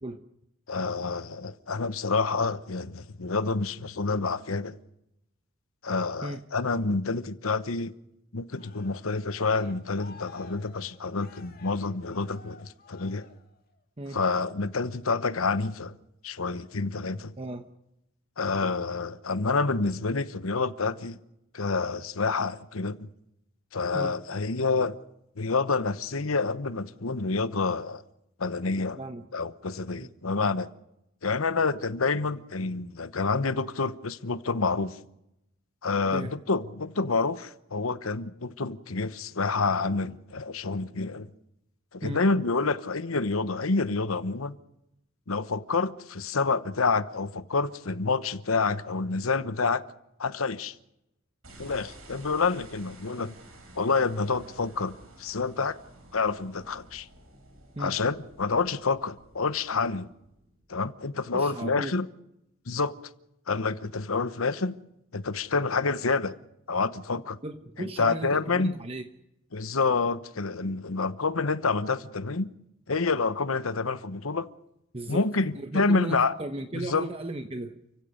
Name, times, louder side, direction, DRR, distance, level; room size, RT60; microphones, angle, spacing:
voice 1, 0.7-4.8 5.8-7.9 8.3-13.3 14.1-16.0 16.2-17.3 18.4-21.2 21.5-23.1 23.7-25.0 25.4-28.0 28.4-29.0 29.3-30.7 31.2-35.0 35.8-41.3 41.9-44.6 45.3-49.8 50.2-50.7 51.6-53.3 53.8-54.9 55.2-55.8 56.1-57.1 57.8-60.1 60.7-62.1 62.7-62.9 63.5-64.7 65.1-66.4 66.7-67.4 67.8-68.7 69.5-72.5 72.9-74.5 75.1-76.3 76.7-77.1, left 4 dB, 85° left, 1.1 m, -28 dB
Cheering, 8.5-13.8 14.2-14.6, left 5 dB, 45° left, 2.1 m, -52 dB
voice 2, 17.4-17.7 23.9-24.2 28.9-29.3 30.0-30.1 36.1-36.4 42.0-42.2 57.7-58.0 61.3-61.9 67.4-69.0 74.9-75.3 75.5-77.8, right 2 dB, 30° right, 1.0 m, -36 dB
sound 1, 51.4-60.8, right 1 dB, 90° right, 6.8 m, -52 dB
29.5 x 16.0 x 6.6 m
head